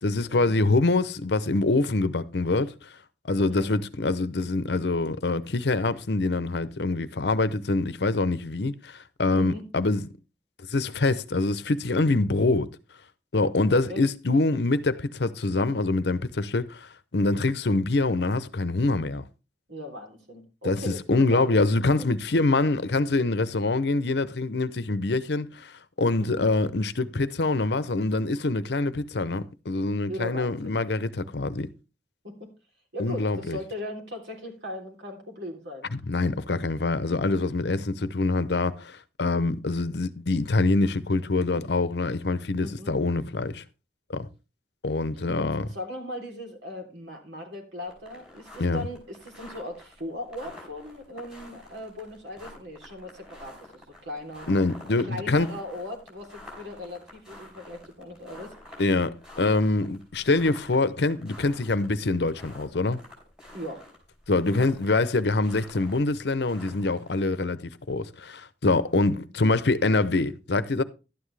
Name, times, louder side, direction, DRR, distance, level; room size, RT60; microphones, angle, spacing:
voice 1, 0.0-2.7 3.3-10.1 10.7-12.7 13.3-19.3 20.6-31.7 33.0-33.6 35.9-43.6 44.1-44.3 44.8-45.7 48.6-48.9 54.5-55.5 58.8-63.0 64.3-70.8, left 2 dB, 65° left, 0.7 m, -25 dB
voice 2, 9.3-9.6 13.7-14.0 19.7-21.5 26.4-26.5 30.1-30.8 32.2-32.5 32.9-35.9 42.5-42.9 45.3-54.5 55.1-58.7 63.5-63.8, left 1 dB, 80° right, 3.4 m, -38 dB
sound 1, 47.8-67.3, left 1 dB, 5° right, 5.4 m, -49 dB
12.0 x 9.5 x 3.3 m
head